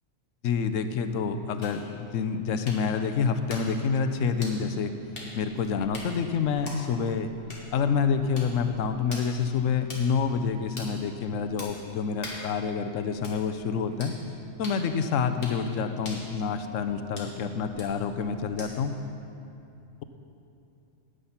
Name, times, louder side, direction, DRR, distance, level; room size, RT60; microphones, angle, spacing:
voice 1, 0.4-4.9 5.3-7.3 7.7-14.1 14.6-18.9, left 6 dB, 90° left, 9 dB, 1.0 m, -27 dB
sound 1, 1.6-19.0, left 1 dB, 45° left, 2.0 m, -46 dB
9.9 x 9.4 x 5.7 m, 2.7 s
omnidirectional pair, 1.3 m